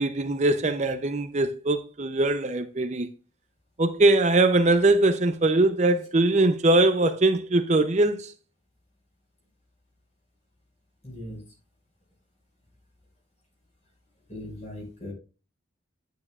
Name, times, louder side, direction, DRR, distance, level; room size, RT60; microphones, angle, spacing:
voice 1, 0.0-3.1 3.8-8.3, right 2 dB, 35° right, 0.5 m, -22 dB
voice 2, 11.0-11.4 14.3-15.1, left 1 dB, 35° left, 5.4 m, -38 dB
10.0 x 9.7 x 2.4 m
head